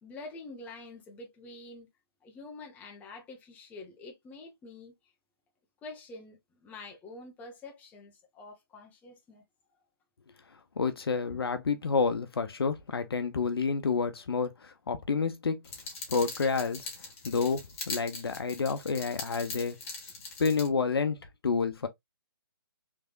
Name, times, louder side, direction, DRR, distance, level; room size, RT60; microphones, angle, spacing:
voice 1, 0.0-1.9 2.2-4.9 5.8-9.4, left 3 dB, 10° left, 1.1 m, -47 dB
voice 2, 10.8-15.6 16.1-16.9 17.2-19.8 20.4-21.2 21.4-21.9, left 5 dB, 75° left, 0.8 m, -29 dB
sound 1, 15.6-20.7, left 4 dB, 35° left, 1.6 m, -41 dB
3.4 x 3.3 x 2.4 m
hypercardioid pair, 145°, 13 cm